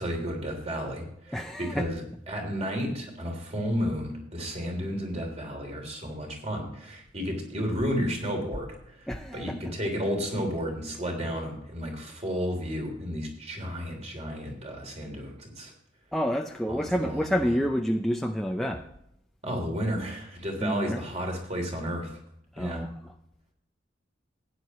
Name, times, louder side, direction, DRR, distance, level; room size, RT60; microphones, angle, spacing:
voice 1, 0.0-15.7 16.7-17.5 19.4-22.2 22.6-22.8, equal, 35° right, 2 dB, 3.2 m, -32 dB
voice 2, 1.3-1.9 9.1-9.6 16.1-18.9 20.6-21.0 22.5-22.9, equal, ahead, 2 dB, 0.5 m, -28 dB
15.5 x 9.8 x 3.1 m, 0.75 s
head